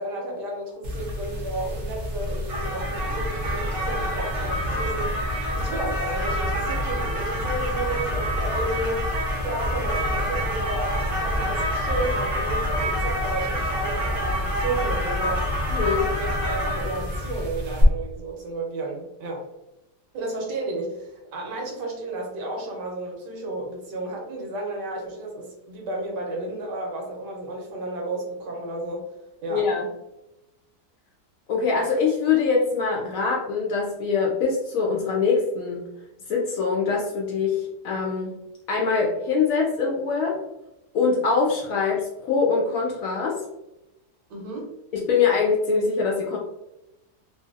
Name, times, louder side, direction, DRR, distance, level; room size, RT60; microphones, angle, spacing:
voice 1, 0.0-9.1 9.4-15.5 16.1-19.5 20.1-29.0 29.4-29.7 44.3-44.7, right 2 dB, 80° right, 0 dB, 1.4 m, -32 dB
sound 1, 0.8-17.8, equal, 60° right, 0.5 m, -27 dB
voice 2, 15.7-16.1 29.5-29.8 31.5-35.8 36.3-38.3 38.7-40.4 40.9-43.4 44.9-46.4, left 5 dB, 70° left, -2 dB, 0.8 m, -23 dB
3.1 x 2.6 x 2.4 m, 0.93 s
omnidirectional pair, 1.8 m